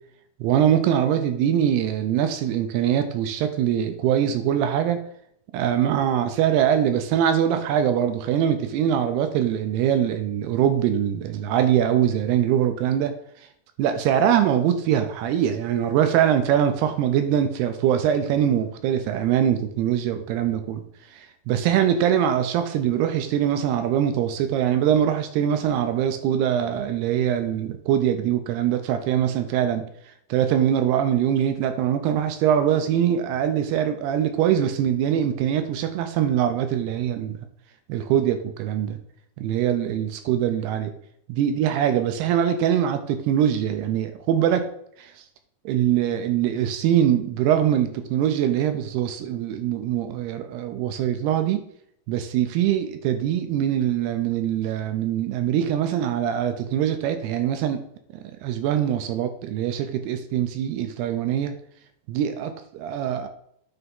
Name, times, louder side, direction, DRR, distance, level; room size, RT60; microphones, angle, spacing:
voice 1, 0.4-5.0 5.5-13.2 13.8-29.8 30.3-37.4 37.9-39.0 39.4-40.9 41.3-44.7 45.0-45.1 45.7-51.6 52.1-57.8 58.1-61.5 62.1-63.3, right 10 dB, 80° right, 8 dB, 2.4 m, -23 dB
9.5 x 3.4 x 5.4 m, 0.71 s
omnidirectional pair, 5.1 m